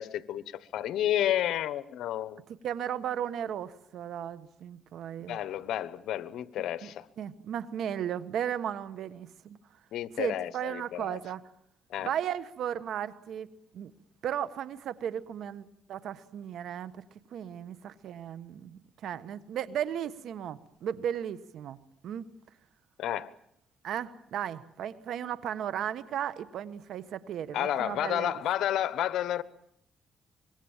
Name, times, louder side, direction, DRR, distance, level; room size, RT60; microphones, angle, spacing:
voice 1, 0.0-2.4 5.2-7.1 9.9-11.2 11.9-12.1 23.0-23.3 27.5-29.4, left 11 dB, 80° left, 15 dB, 1.1 m, -31 dB
voice 2, 2.6-5.4 6.8-6.9 7.2-9.6 10.2-11.4 12.0-13.9 14.2-17.0 17.3-21.8 22.0-22.3 23.8-28.3, right 9 dB, 75° right, 14 dB, 1.3 m, -35 dB
25.5 x 22.0 x 7.4 m, 0.73 s
cardioid pair, 90°, 0 cm